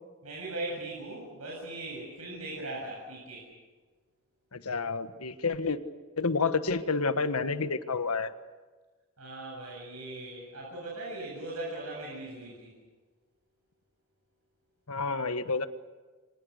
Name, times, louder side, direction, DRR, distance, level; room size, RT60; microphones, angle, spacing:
voice 1, 0.2-3.5 9.2-12.7, right 2 dB, 85° right, -3 dB, 7.7 m, -39 dB
voice 2, 4.5-5.8 6.2-8.3 14.9-15.7, left 4 dB, 85° left, 10 dB, 1.5 m, -29 dB
29.5 x 25.0 x 6.6 m, 1.3 s
head